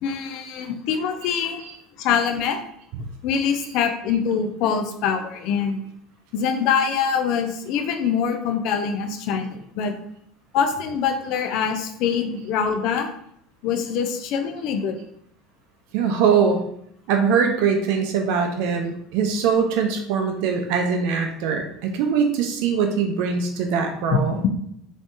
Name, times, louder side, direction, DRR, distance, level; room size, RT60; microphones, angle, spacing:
voice 1, 0.0-1.6 2.0-2.6 3.2-5.8 6.3-10.0 10.5-13.1 13.6-15.0 24.1-24.5, left 7 dB, 50° left, 6 dB, 0.5 m, -24 dB
voice 2, 15.9-16.6 17.1-24.4, right 6 dB, 55° right, 4 dB, 0.5 m, -22 dB
4.0 x 3.4 x 2.5 m, 0.69 s
figure-of-eight pair, 65°, 0 cm